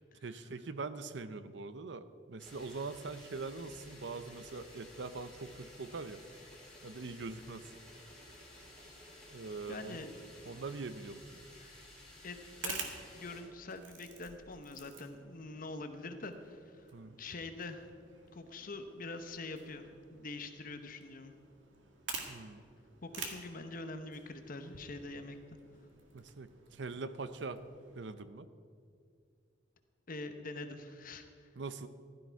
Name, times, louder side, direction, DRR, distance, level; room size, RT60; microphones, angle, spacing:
voice 1, 0.2-6.2 6.8-7.7 9.3-10.0 10.5-11.2 16.9-17.2 22.3-22.6 26.1-27.6 28.0-28.5 31.6-31.9, right 3 dB, 70° right, 12 dB, 0.7 m, -43 dB
sound 1, 2.4-13.4, left 1 dB, 5° left, 3.6 m, -54 dB
voice 2, 9.7-10.1 11.6-11.8 12.2-16.9 17.2-17.8 18.3-21.3 23.0-25.6 30.1-31.5, left 2 dB, 50° left, 7 dB, 1.0 m, -45 dB
sound 2, 12.4-28.1, right 5 dB, 85° right, 1.9 m, -49 dB
15.5 x 12.5 x 4.7 m, 2.3 s
head